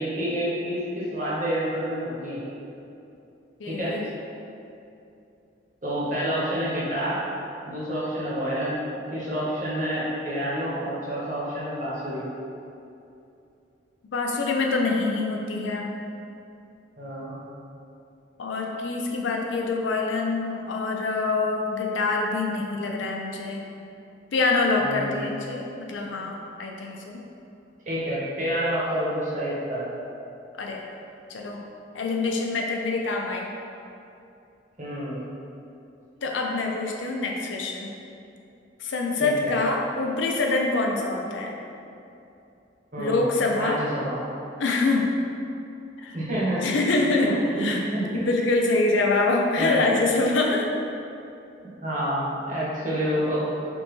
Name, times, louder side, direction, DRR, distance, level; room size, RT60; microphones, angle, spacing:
voice 1, 0.0-2.4 3.7-3.9 5.8-7.2 7.6-8.8 9.1-12.2 17.0-17.4 24.8-25.1 27.9-29.9 34.8-35.2 39.2-39.6 42.9-43.2 43.5-44.2 46.1-46.7 47.2-48.2 49.6-49.8 51.8-53.4, equal, 40° right, -7 dB, 1.0 m, -28 dB
voice 2, 3.6-4.0 14.1-15.9 18.4-23.6 24.3-27.2 30.6-30.8 31.3-31.6 31.9-33.5 36.2-37.9 38.8-41.5 43.0-43.8 44.6-45.1 46.0-46.2 46.6-47.3 47.6-47.8 48.1-50.7, left 3 dB, 85° left, 0 dB, 0.5 m, -25 dB
5.2 x 2.2 x 3.1 m, 2.7 s
head